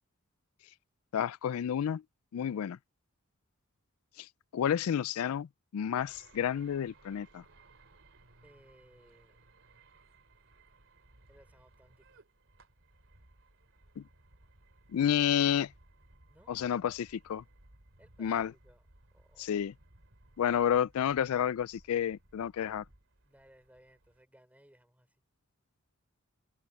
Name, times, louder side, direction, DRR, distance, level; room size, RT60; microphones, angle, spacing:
voice 1, 1.1-2.0 2.3-2.8 4.2-5.5 5.7-7.4 14.0-14.1 14.9-15.7 16.5-17.4 18.2-18.5 19.4-19.7 20.4-22.8, left 9 dB, 90° left, 0.3 m, -30 dB
sound 1, 5.9-24.2, right 2 dB, 65° right, 2.8 m, -62 dB
voice 2, 8.4-9.4 11.3-12.2 16.3-16.6 18.0-18.8 19.1-19.6 23.2-25.2, equal, 5° right, 4.6 m, -62 dB
open air
head